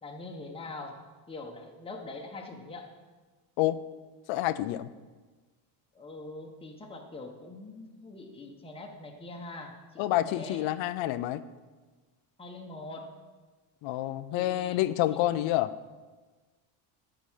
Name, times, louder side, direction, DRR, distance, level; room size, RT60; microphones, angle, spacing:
voice 1, 0.0-1.0 1.3-2.9 5.9-10.6 12.4-13.1 14.3-15.4, left 2 dB, 10° left, 1 dB, 1.2 m, -43 dB
voice 2, 4.3-4.9 10.0-11.4 13.8-15.7, left 14 dB, 65° left, 14 dB, 0.7 m, -28 dB
13.0 x 5.0 x 7.4 m, 1.3 s
cardioid pair, 140°, 50 cm